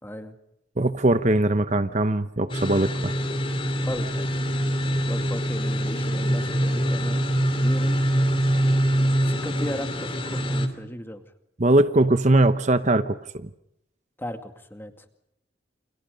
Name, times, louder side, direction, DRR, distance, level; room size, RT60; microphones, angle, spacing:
voice 1, 0.0-0.3 3.8-4.5 5.1-7.2 7.6-8.0 9.2-11.2 14.2-15.1, equal, 10° left, 7 dB, 2.2 m, -36 dB
voice 2, 0.8-3.1 11.6-13.5, right 2 dB, 35° right, 10 dB, 0.9 m, -21 dB
sound 1, 2.5-10.7, equal, 25° left, 2.8 m, -24 dB
29.5 x 28.0 x 5.3 m, 0.82 s
head